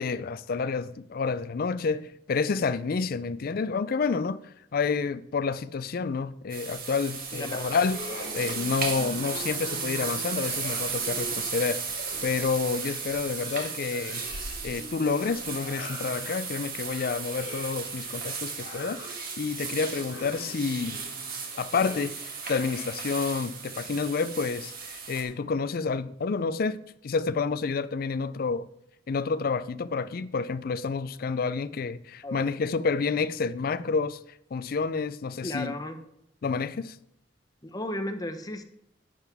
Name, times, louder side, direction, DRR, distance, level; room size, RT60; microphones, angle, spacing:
voice 1, 0.0-4.4 4.7-8.0 8.3-11.8 12.2-14.2 14.6-21.0 21.6-28.7 29.1-34.2 34.5-35.7 36.4-37.0, left 5 dB, 55° left, 0.4 m, -29 dB
sound 1, 6.5-25.2, right 5 dB, 55° right, 1.7 m, -35 dB
voice 2, 7.3-7.8 32.2-32.5 35.4-36.0 37.6-38.6, left 1 dB, 20° left, 0.8 m, -34 dB
sound 2, 7.7-23.1, left 1 dB, 80° left, 3.1 m, -44 dB
11.5 x 8.0 x 3.5 m
head